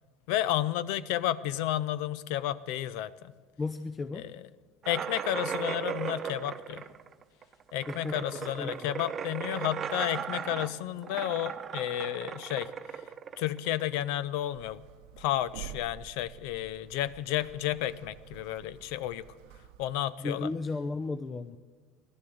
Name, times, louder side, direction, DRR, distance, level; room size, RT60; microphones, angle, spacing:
voice 1, 0.3-3.3 4.1-4.4 4.9-6.9 7.7-13.0 13.4-14.8 15.2-19.2 19.8-20.5, left 12 dB, 75° left, 18 dB, 0.6 m, -32 dB
voice 2, 3.6-4.3 7.9-8.9 20.2-21.6, left 3 dB, 30° left, 10 dB, 0.6 m, -35 dB
sound 1, 4.8-14.2, right 7 dB, 40° right, 0.8 m, -37 dB
sound 2, 14.5-20.0, right 11 dB, 80° right, 0.7 m, -49 dB
15.5 x 12.0 x 7.8 m, 1.4 s
supercardioid pair, 90°, 0 cm